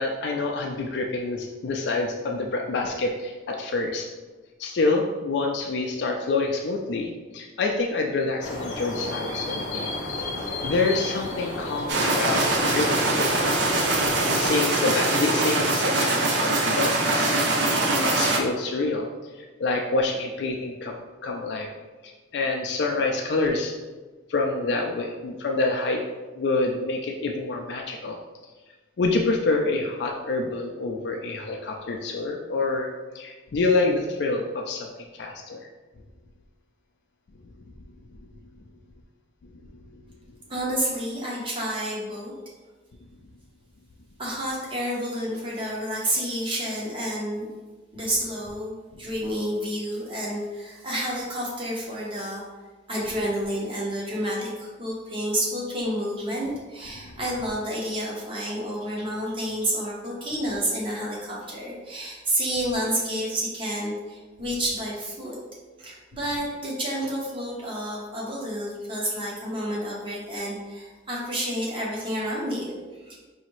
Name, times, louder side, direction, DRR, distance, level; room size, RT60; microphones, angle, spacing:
voice 1, 0.0-4.1 4.6-9.9 10.6-13.5 14.0-19.1 19.3-21.0 21.2-21.7 22.0-23.7 24.3-26.0 26.3-28.2 29.0-34.9 35.2-35.6 39.9-40.0 57.0-57.1, left 3 dB, 60° left, 1 dB, 0.4 m, -27 dB
sound 1, 8.4-14.5, left 2 dB, 40° left, 0.7 m, -32 dB
sound 2, 11.9-18.4, right 2 dB, 65° right, 0.5 m, -23 dB
voice 2, 40.5-42.3 44.2-47.5 47.9-52.4 52.9-65.4 65.8-73.2, equal, 25° right, -4 dB, 0.9 m, -30 dB
4.9 x 2.7 x 3.0 m, 1.3 s
head